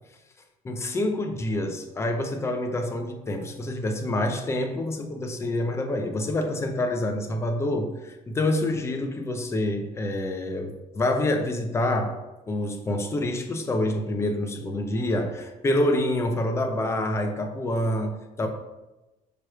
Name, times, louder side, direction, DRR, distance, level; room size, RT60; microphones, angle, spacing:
voice 1, 0.6-12.2 12.5-18.5, left 1 dB, 20° left, 4 dB, 0.6 m, -27 dB
6.7 x 3.0 x 4.9 m, 1.0 s
cardioid pair, 165°, 15 cm